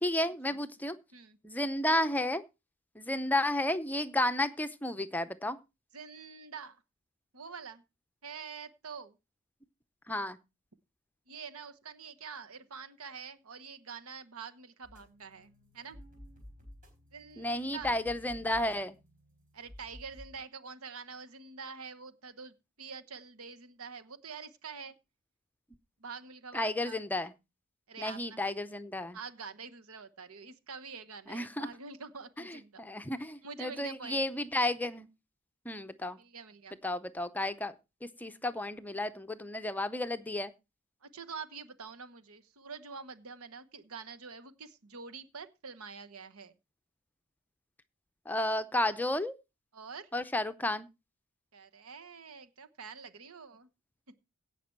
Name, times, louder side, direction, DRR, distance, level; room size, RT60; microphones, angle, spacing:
voice 1, 0.0-1.0 1.4-2.4 3.0-5.6 10.1-10.4 17.4-19.0 26.5-27.3 28.0-29.2 31.3-31.7 32.5-35.1 35.6-36.2 36.8-37.7 38.0-40.5 48.3-49.3 50.1-50.9, left 1 dB, 10° left, 0.6 m, -32 dB
voice 2, 5.9-6.8 7.3-7.8 8.2-9.2 11.3-16.0 17.1-18.0 19.5-25.0 26.0-27.0 27.9-28.4 29.1-32.8 33.4-34.2 36.2-36.8 41.0-46.5 49.7-50.1 51.5-53.7, right 5 dB, 85° right, 1.1 m, -46 dB
sound 1, 14.8-20.4, equal, 40° right, 4.3 m, -53 dB
17.0 x 6.0 x 4.5 m
head